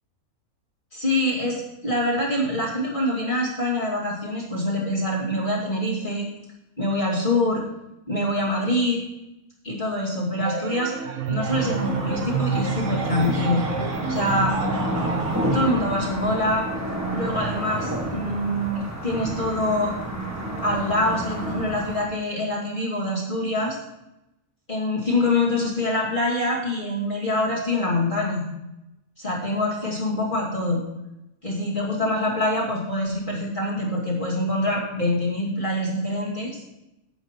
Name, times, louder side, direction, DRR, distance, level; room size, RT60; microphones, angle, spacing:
voice 1, 0.9-6.3 6.8-7.6 8.1-9.0 9.6-10.9 11.3-13.7 14.1-14.5 15.5-16.7 17.1-19.9 20.6-23.8 24.7-28.5 29.2-30.9 31.4-36.7, left 1 dB, 35° left, -4 dB, 2.6 m, -25 dB
sound 1, 10.4-15.6, right 7 dB, 60° right, 1.3 m, -29 dB
sound 2, 11.4-22.0, equal, 10° right, 1.3 m, -30 dB
10.5 x 8.0 x 4.4 m, 0.90 s
omnidirectional pair, 1.6 m